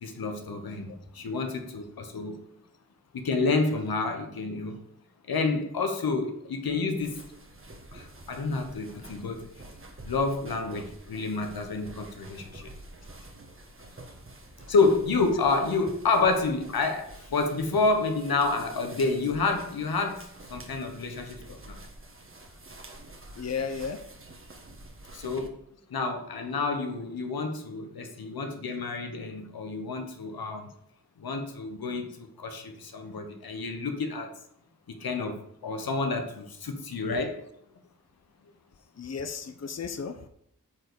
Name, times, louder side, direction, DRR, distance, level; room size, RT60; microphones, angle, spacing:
voice 1, 0.0-2.4 3.1-4.8 5.3-7.2 7.9-9.5 10.0-12.7 14.7-21.8 25.1-25.6 25.9-30.7 31.2-34.3 34.9-37.4, left 3 dB, 85° left, 5 dB, 1.2 m, -29 dB
sound 1, 7.0-25.5, right 2 dB, 35° right, 1.4 m, -48 dB
voice 2, 23.4-24.0 39.0-40.2, left 6 dB, 45° left, 8 dB, 0.8 m, -33 dB
9.1 x 4.1 x 6.8 m, 0.71 s
cardioid pair, 55°, 35 cm